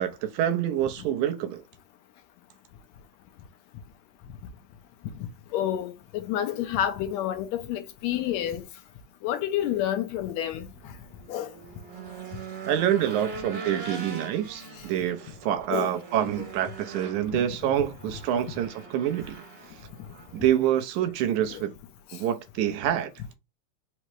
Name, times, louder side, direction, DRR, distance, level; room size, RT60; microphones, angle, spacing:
voice 1, 0.0-1.6 12.7-19.4 20.3-21.7 22.1-23.1, right 11 dB, 85° right, 2.1 m, -27 dB
voice 2, 5.5-8.6 9.2-10.7 11.3-11.5 15.7-15.9 17.3-17.4 21.5-21.6, left 11 dB, 80° left, 1.7 m, -29 dB
Race car auto racing / Engine, 10.7-20.8, right 4 dB, 50° right, 1.1 m, -42 dB
5.5 x 2.0 x 4.5 m
omnidirectional pair, 3.4 m